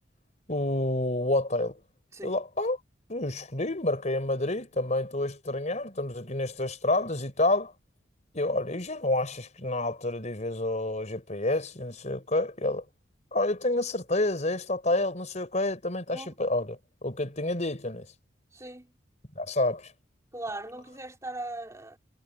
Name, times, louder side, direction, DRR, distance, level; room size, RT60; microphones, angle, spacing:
voice 1, 0.5-1.8 2.2-2.8 3.1-7.7 8.3-12.8 13.3-18.1 19.4-19.9, left 2 dB, 40° left, 4.5 m, -29 dB
voice 2, 18.5-18.9 20.3-22.0, right 2 dB, 15° right, 3.3 m, -39 dB
head